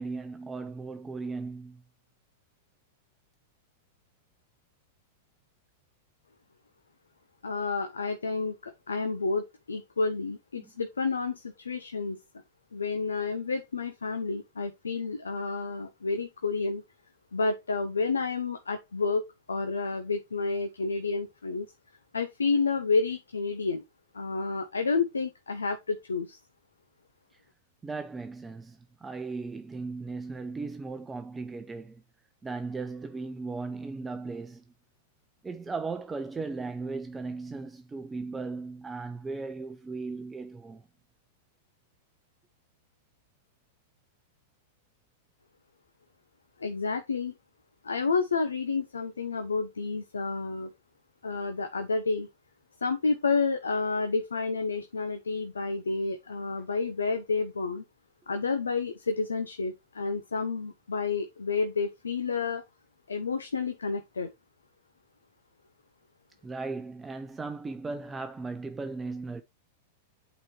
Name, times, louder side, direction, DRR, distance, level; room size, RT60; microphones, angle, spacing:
voice 1, 0.0-1.8 10.6-10.7 27.8-32.0 32.4-34.6 35.4-40.8 66.4-69.4, right 3 dB, 15° right, 0.6 m, -37 dB
voice 2, 7.4-12.2 12.7-16.8 17.3-19.2 19.5-21.7 22.1-23.8 24.1-26.4 46.6-47.3 47.8-50.7 51.2-52.3 52.8-57.8 58.3-62.6 63.1-64.3, left 4 dB, 90° left, 0.7 m, -30 dB
8.7 x 4.1 x 3.0 m
hypercardioid pair, 105°, 0 cm